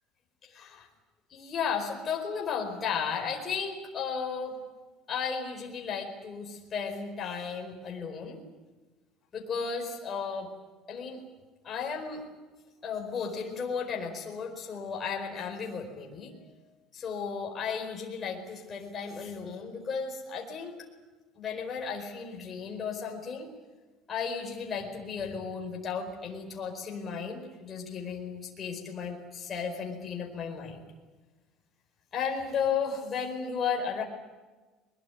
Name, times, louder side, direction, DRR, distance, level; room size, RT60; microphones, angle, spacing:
voice 1, 0.4-0.8 1.3-4.6 5.1-8.4 9.3-10.5 10.9-11.2 11.6-12.2 12.8-16.5 16.9-20.8 21.3-23.5 24.1-30.8 32.1-34.0, left 6 dB, 25° left, 1 dB, 4.7 m, -34 dB
22.0 x 22.0 x 9.5 m, 1.2 s
cardioid pair, 180°, 0 cm